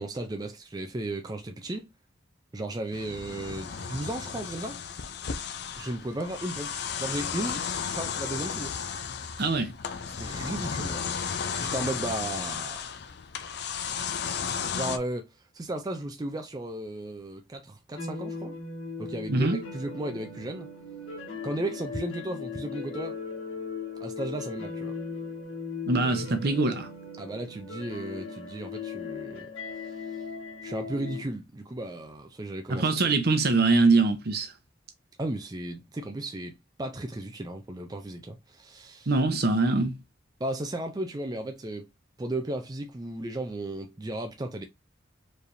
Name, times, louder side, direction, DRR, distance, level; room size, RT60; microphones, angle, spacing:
voice 1, 0.0-1.9 2.5-4.8 5.8-7.6 7.9-8.7 10.2-11.0 11.6-12.8 14.7-18.5 19.0-20.7 21.4-23.2 24.0-24.9 27.2-29.5 29.8-30.2 30.6-32.9 35.2-39.1 40.4-41.9 42.2-44.6, right 1 dB, 20° right, 0.4 m, -35 dB
sound 1, 2.9-15.0, left 6 dB, 55° left, 0.5 m, -34 dB
voice 2, 9.4-9.7 19.3-19.6 25.9-26.9 32.7-34.5 39.1-40.0, right 3 dB, 55° right, 0.8 m, -23 dB
sound 2, 18.0-31.2, left 5 dB, 90° left, 1.8 m, -38 dB
4.7 x 3.3 x 2.6 m
head